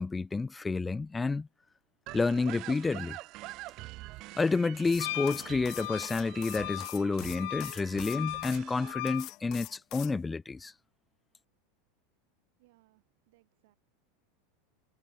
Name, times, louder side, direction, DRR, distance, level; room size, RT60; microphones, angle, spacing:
voice 1, 0.0-1.5 2.1-3.2 4.4-10.7, left 4 dB, 15° left, 0.4 m, -30 dB
sound 1, 2.1-8.9, right 20 dB, 50° right, 1.4 m, -46 dB
sound 2, 4.8-8.6 9.1-10.1, left 19 dB, 50° left, 0.7 m, -45 dB
Wind instrument woodwind instrument, 5.0-9.3, left 21 dB, 70° left, 1.0 m, -39 dB
voice 2, 12.6-13.8, right 21 dB, 70° right, 6.9 m, -67 dB
supercardioid pair, 120°, 0 cm